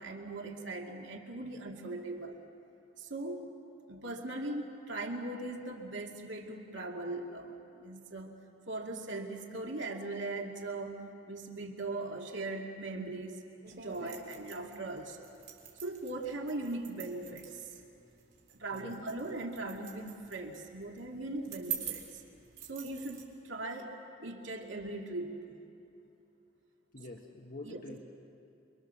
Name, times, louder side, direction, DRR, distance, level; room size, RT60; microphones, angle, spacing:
voice 1, 0.0-2.4 3.0-3.5 3.9-8.3 8.7-13.4 13.7-15.3 15.8-17.7 18.6-22.2 22.7-23.9 24.2-25.6 27.6-27.8, right 2 dB, 80° right, 1 dB, 2.4 m, -39 dB
sound 1, 13.6-23.2, right 9 dB, 60° right, 4.1 m, -46 dB
voice 2, 18.7-19.0 26.9-28.0, left 2 dB, 50° left, 1 dB, 1.4 m, -46 dB
28.5 x 24.0 x 7.0 m, 2.8 s
head